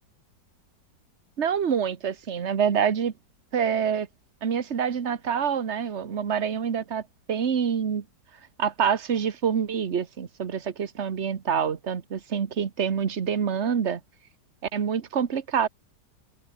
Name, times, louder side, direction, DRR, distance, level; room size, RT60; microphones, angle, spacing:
voice 1, 1.4-3.1 3.5-4.1 4.4-7.0 7.3-8.0 8.6-14.0 14.7-15.7, right 7 dB, 40° right, 1.5 m, -26 dB
omnidirectional pair, 1.9 m